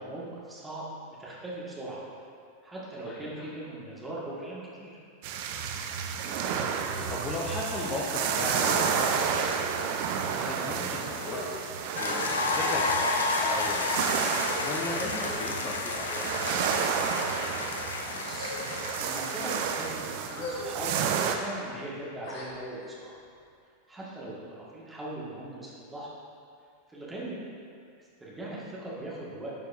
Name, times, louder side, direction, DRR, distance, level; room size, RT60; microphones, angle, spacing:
voice 1, 0.0-2.0 2.6-5.0 18.1-23.2 23.9-26.1 26.9-27.4 28.2-29.5, right 1 dB, 10° right, -7 dB, 1.5 m, -40 dB
voice 2, 3.0-3.5 6.2-9.7 10.3-12.2 12.5-13.9 14.6-16.2, left 2 dB, 25° left, -4 dB, 0.7 m, -36 dB
sound 1, 5.2-21.4, right 7 dB, 50° right, 0.4 m, -31 dB
sound 2, 6.9-7.1 7.8-8.3 8.6-8.9 9.6-9.9 10.6-10.7 11.1-13.1 13.3-13.6 14.4-14.7 15.1-15.5 16.0-16.8 17.5-17.8 18.3-19.0 19.6-19.8 20.3-20.7 21.0-21.2 22.2-22.9, left 1 dB, 50° left, 1.1 m, -41 dB
sound 3, 12.0-20.1, left 3 dB, 70° left, 0.6 m, -31 dB
11.0 x 4.6 x 2.5 m, 2.3 s
figure-of-eight pair, 90°, 0 cm